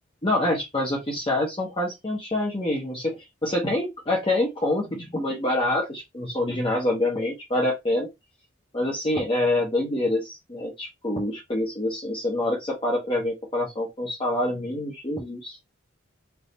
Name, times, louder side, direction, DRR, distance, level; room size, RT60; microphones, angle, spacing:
voice 1, 0.2-8.1 8.7-15.6, left 1 dB, 25° left, 0.9 m, -26 dB
3.4 x 2.7 x 4.1 m
head